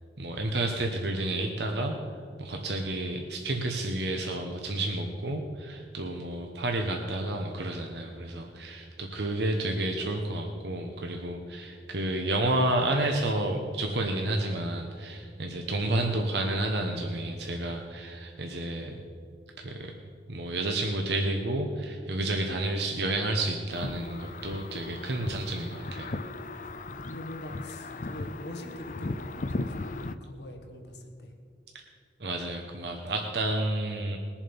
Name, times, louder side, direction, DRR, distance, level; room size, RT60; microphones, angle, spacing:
voice 1, 0.2-2.0 2.4-19.0 19.6-19.9 20.3-26.1 32.2-34.2, right 1 dB, 65° right, 2 dB, 1.0 m, -30 dB
sound 1, 23.7-30.1, left 2 dB, 45° left, 0.5 m, -37 dB
voice 2, 26.9-31.3, left 1 dB, 70° left, 3 dB, 1.5 m, -43 dB
20.5 x 7.3 x 5.3 m, 2.4 s
head